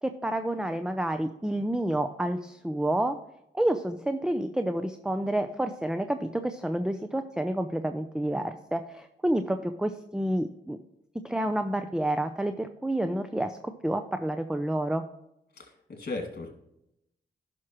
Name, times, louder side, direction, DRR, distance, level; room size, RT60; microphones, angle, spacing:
voice 1, 0.0-3.2 3.5-10.8 11.2-15.0, right 1 dB, 5° right, 8 dB, 0.6 m, -29 dB
voice 2, 15.5-16.5, left 3 dB, 50° left, 2 dB, 2.3 m, -37 dB
11.0 x 6.0 x 3.0 m, 0.82 s
cardioid pair, 50°, 20 cm